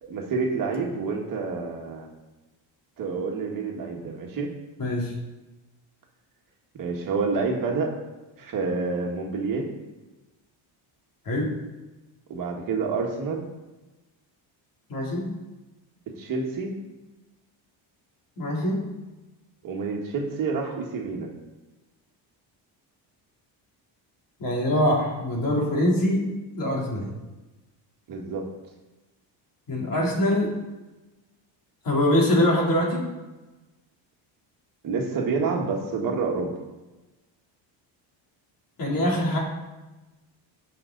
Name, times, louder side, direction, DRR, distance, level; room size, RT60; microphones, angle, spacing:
voice 1, 0.0-2.1 3.0-4.5 6.8-8.0 8.4-9.7 12.3-13.5 16.2-16.7 19.6-21.3 28.1-28.5 34.8-36.5, right 4 dB, 45° right, 0 dB, 1.8 m, -28 dB
voice 2, 4.8-5.1 11.2-11.5 14.9-15.2 18.4-18.8 24.4-26.2 26.5-27.1 29.7-30.5 31.8-33.0 38.8-39.4, left 1 dB, 45° left, -3 dB, 3.3 m, -23 dB
17.0 x 5.9 x 4.0 m, 1.1 s
cardioid pair, 160°, 46 cm